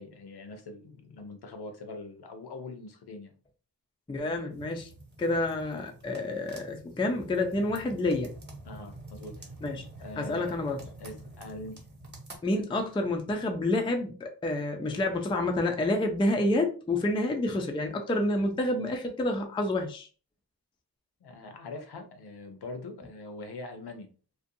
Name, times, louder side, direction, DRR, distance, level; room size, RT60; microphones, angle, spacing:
voice 1, 0.0-3.3 8.6-9.5 10.0-10.6 11.0-11.8 21.2-24.1, left 2 dB, 65° left, 6 dB, 0.6 m, -43 dB
voice 2, 4.1-4.9 5.2-8.3 9.6-9.9 10.2-10.8 12.4-20.1, left 2 dB, 15° left, 4 dB, 0.3 m, -28 dB
sound 1, 4.5-12.4, right 2 dB, 25° right, 0.8 m, -47 dB
2.5 x 2.2 x 2.6 m, 0.37 s
wide cardioid pair, 115°, 42 cm